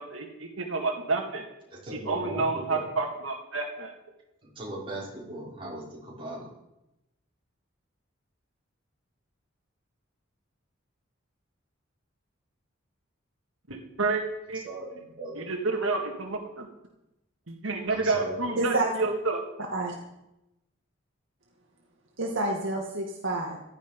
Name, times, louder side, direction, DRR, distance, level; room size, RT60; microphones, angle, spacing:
voice 1, 0.0-1.5 2.1-3.9 13.7-14.6 15.4-16.7 17.5-19.4, right 3 dB, 85° right, 2 dB, 2.0 m, -29 dB
voice 2, 1.8-2.9 4.6-6.5 14.6-15.4 17.9-18.6, right 1 dB, 25° right, -5 dB, 5.8 m, -38 dB
voice 3, 18.6-18.9 19.7-19.9 22.2-23.6, right 2 dB, 65° right, 0 dB, 2.0 m, -28 dB
16.0 x 12.5 x 5.4 m, 0.90 s
head